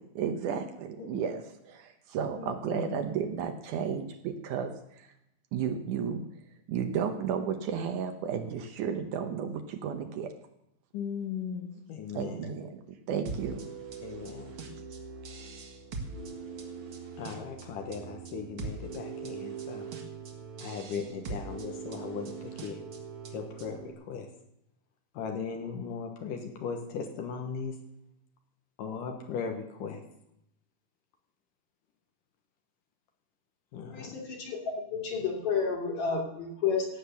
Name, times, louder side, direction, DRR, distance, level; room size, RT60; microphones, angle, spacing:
voice 1, 0.0-1.4 1.7-5.1 5.5-6.2 6.7-10.3 12.2-12.8 13.1-13.6, right 7 dB, 75° right, 6 dB, 2.3 m, -33 dB
voice 2, 2.4-3.0 10.9-12.5 14.0-14.5 17.2-19.9 20.6-22.8 23.3-24.3 25.1-27.8 28.8-30.0 33.7-34.2, left 6 dB, 80° left, 4 dB, 2.9 m, -38 dB
sound 1, 13.3-23.9, right 4 dB, 45° right, 2.0 m, -41 dB
voice 3, 33.9-36.9, left 5 dB, 60° left, 0 dB, 4.0 m, -31 dB
17.0 x 8.0 x 6.9 m, 0.81 s
omnidirectional pair, 3.8 m